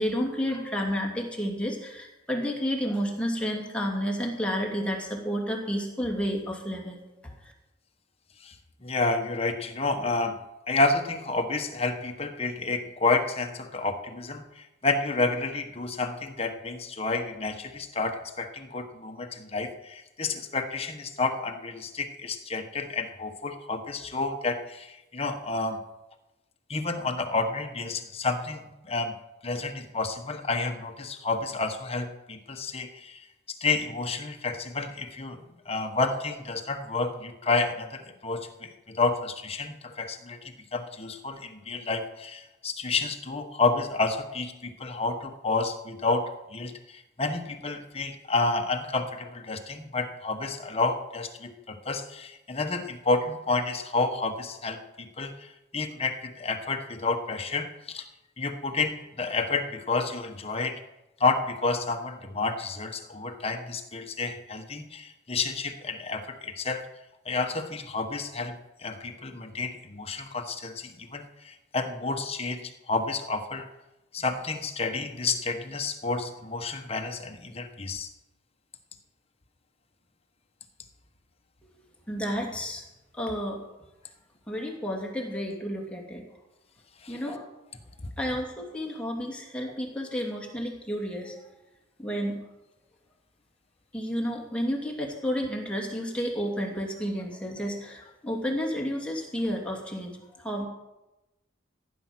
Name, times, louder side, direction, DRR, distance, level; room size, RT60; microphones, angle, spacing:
voice 1, 0.0-7.0 82.1-82.8 83.1-83.6 84.5-86.2 87.1-87.4 88.2-91.5 92.0-92.4 93.9-100.7, equal, 5° left, 0 dB, 2.7 m, -31 dB
voice 2, 8.8-10.4 10.7-25.8 26.7-29.2 29.4-33.2 33.6-40.4 40.7-58.1 58.4-60.8 61.2-66.9 67.2-68.6 68.8-73.7 74.1-78.1 87.0-87.2, left 3 dB, 30° left, 5 dB, 1.3 m, -30 dB
16.0 x 9.6 x 6.1 m, 0.98 s
head